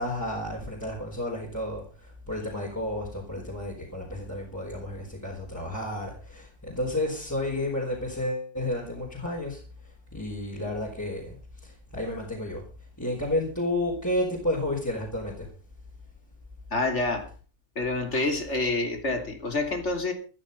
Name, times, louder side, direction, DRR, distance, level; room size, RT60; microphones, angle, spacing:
voice 1, 0.0-9.6 10.1-11.3 11.6-12.6 13.0-15.5, left 1 dB, 10° left, -3 dB, 4.4 m, -31 dB
voice 2, 16.7-17.3 17.8-20.1, left 2 dB, 45° left, 5 dB, 3.5 m, -27 dB
14.0 x 13.5 x 5.4 m, 0.37 s
omnidirectional pair, 1.6 m